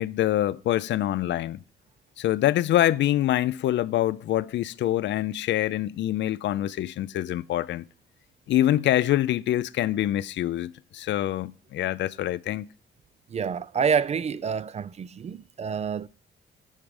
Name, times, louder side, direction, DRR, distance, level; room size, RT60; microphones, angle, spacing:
voice 1, 0.0-1.6 2.2-7.9 8.5-12.7, left 13 dB, 65° left, 0.4 m, -25 dB
voice 2, 13.3-16.1, right 6 dB, 35° right, 0.4 m, -27 dB
9.0 x 4.7 x 4.9 m
cardioid pair, 90°, 20 cm